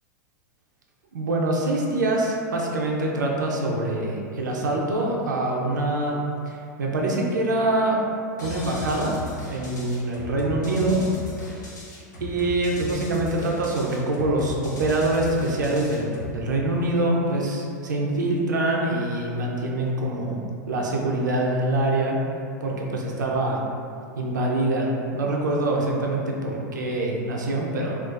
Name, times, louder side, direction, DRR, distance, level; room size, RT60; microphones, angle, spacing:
voice 1, 1.1-6.2 6.4-8.0 8.4-9.2 9.5-11.0 12.2-20.4 20.7-22.2 22.6-23.6 24.1-28.0, right 2 dB, 85° right, -2 dB, 0.4 m, -25 dB
sound 1, 8.4-16.4, left 2 dB, 90° left, 0.5 m, -37 dB
2.4 x 2.3 x 2.2 m, 2.4 s
hypercardioid pair, 95°, 10 cm